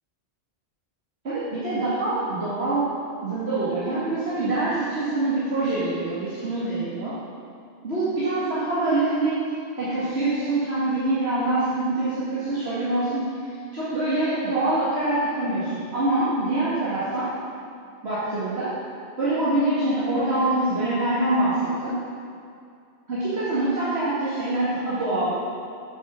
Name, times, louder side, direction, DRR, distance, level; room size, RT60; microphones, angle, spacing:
voice 1, 1.2-2.9 3.2-7.1 7.8-9.4 9.8-17.3 18.0-18.7 19.2-21.9 23.1-25.4, right 2 dB, 65° right, -11 dB, 2.3 m, -25 dB
9.0 x 6.6 x 6.2 m, 2.4 s
omnidirectional pair, 1.2 m